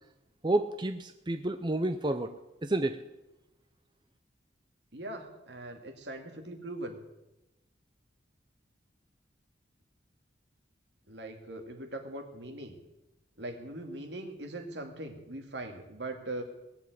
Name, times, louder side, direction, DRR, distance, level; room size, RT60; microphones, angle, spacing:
voice 1, 0.4-2.3 2.6-3.0, right 2 dB, 25° right, 7 dB, 0.6 m, -30 dB
voice 2, 4.9-7.0 11.1-12.8 13.4-16.4, right 1 dB, 70° right, 5 dB, 2.4 m, -41 dB
19.5 x 7.6 x 9.5 m, 0.97 s
head